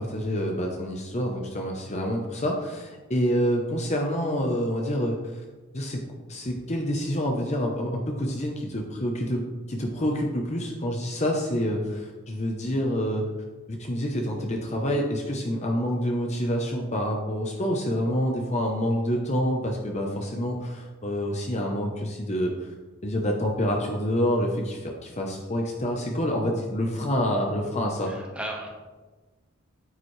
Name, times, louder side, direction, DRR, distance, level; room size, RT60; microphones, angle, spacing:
voice 1, 0.0-5.4 5.7-6.0 6.3-9.4 9.7-13.3 13.7-22.7 23.0-28.1, equal, 30° left, 1 dB, 0.8 m, -27 dB
voice 2, 28.0-28.7, right 1 dB, 5° right, -1 dB, 1.5 m, -35 dB
9.1 x 9.0 x 3.3 m, 1.2 s
head